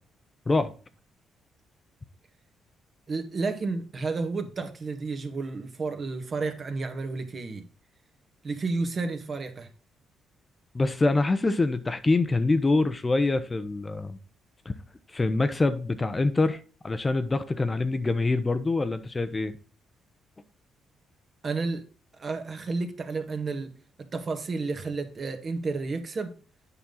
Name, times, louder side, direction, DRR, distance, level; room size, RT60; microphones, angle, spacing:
voice 1, 3.1-7.6 8.4-9.7 21.4-21.8 22.2-23.7 24.1-26.3, right 3 dB, 40° right, 1.7 m, -31 dB
voice 2, 10.7-14.2 14.6-14.7 15.1-19.5, left 3 dB, 25° left, 0.8 m, -25 dB
8.7 x 5.4 x 3.9 m
cardioid pair, 90°, 0 cm